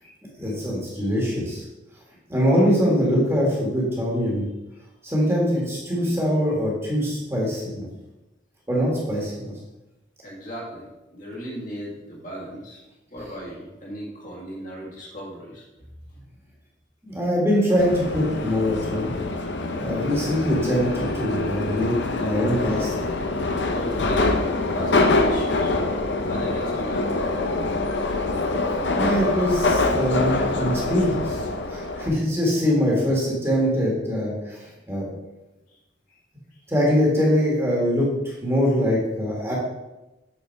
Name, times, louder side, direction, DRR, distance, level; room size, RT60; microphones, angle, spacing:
voice 1, 0.4-1.6 2.3-4.4 5.0-7.9 8.7-9.5 17.0-19.1 19.8-21.9 22.2-23.0 28.9-31.4 31.7-35.1 36.7-39.5, equal, 15° right, -4 dB, 1.8 m, -23 dB
voice 2, 10.2-12.8 13.1-15.6 16.1-16.3 19.7-19.8 23.6-24.3 24.7-27.1 35.7-35.8 36.1-36.2, equal, 40° left, -4 dB, 1.9 m, -37 dB
Subway metro underground, 17.8-32.1, left 2 dB, 65° left, 0.7 m, -25 dB
8.0 x 4.4 x 4.6 m, 1.0 s
head